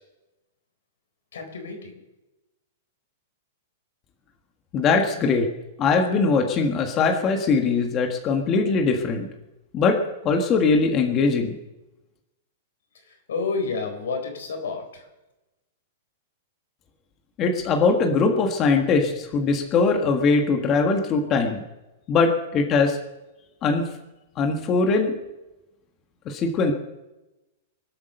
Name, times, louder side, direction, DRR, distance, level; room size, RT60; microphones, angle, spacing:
voice 1, 1.3-1.9 13.1-15.0, left 4 dB, 90° left, 5 dB, 4.1 m, -30 dB
voice 2, 4.7-5.5 5.8-9.3 9.7-10.0 10.2-11.6 17.4-21.6 22.1-23.0 23.6-23.9 24.4-25.1 26.2-26.7, left 4 dB, 25° left, 3 dB, 1.6 m, -21 dB
24.0 x 8.7 x 6.7 m, 1.0 s
supercardioid pair, 160°, 0 cm